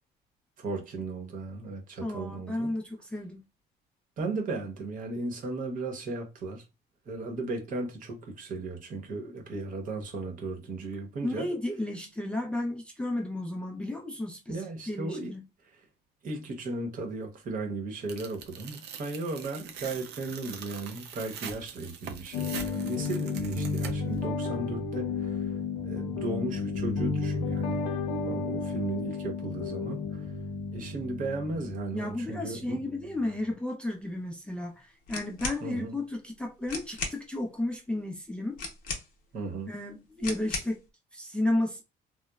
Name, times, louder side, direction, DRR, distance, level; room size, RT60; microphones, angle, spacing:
voice 1, 0.6-2.7 4.2-6.6 7.1-11.5 14.5-15.4 15.6-15.8 16.2-27.9 28.2-30.3 30.7-32.8 35.6-36.0 39.3-39.7, right 3 dB, 55° right, 0.8 m, -36 dB
voice 2, 2.0-3.4 11.2-14.6 14.9-15.4 31.9-38.6 39.7-40.8 41.1-41.8, left 1 dB, 5° left, 0.4 m, -33 dB
Tearing, 18.1-24.2, right 7 dB, 85° right, 0.5 m, -43 dB
sound 1, 22.3-33.5, left 4 dB, 85° left, 0.6 m, -33 dB
sound 2, 35.1-35.6 36.4-36.5 36.7-37.2 38.6-39.3 40.2-40.8, left 4 dB, 55° left, 0.8 m, -36 dB
2.9 x 2.0 x 2.3 m
cardioid pair, 110°, 17 cm